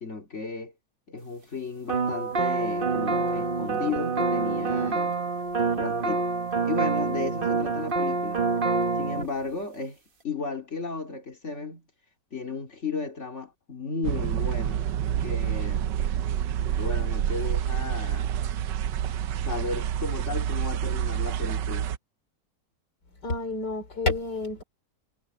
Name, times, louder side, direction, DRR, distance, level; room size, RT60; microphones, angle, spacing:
voice 1, 0.0-0.7 1.1-5.2 5.7-6.3 6.6-8.4 9.0-10.0 10.2-11.8 12.3-14.8 15.2-15.8 16.8-18.4 19.4-21.9, left 4 dB, 40° left, 2.9 m, -34 dB
sound 1, 1.9-9.3, right 4 dB, 35° right, 1.4 m, -26 dB
sound 2, 14.0-22.0, right 10 dB, 85° right, 1.4 m, -28 dB
voice 2, 23.2-24.6, left 3 dB, 70° left, 4.5 m, -29 dB
omnidirectional pair, 1.9 m